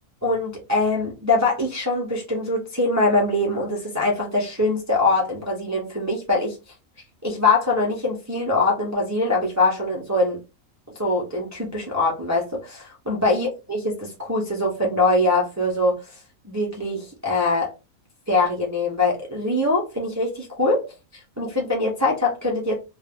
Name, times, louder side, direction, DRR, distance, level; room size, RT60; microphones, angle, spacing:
voice 1, 0.2-6.6 7.2-10.4 10.9-16.2 16.4-17.7 18.3-20.8 21.1-22.7, left 2 dB, 25° right, -3 dB, 0.4 m, -23 dB
2.4 x 2.3 x 3.4 m, 0.28 s
omnidirectional pair, 1.5 m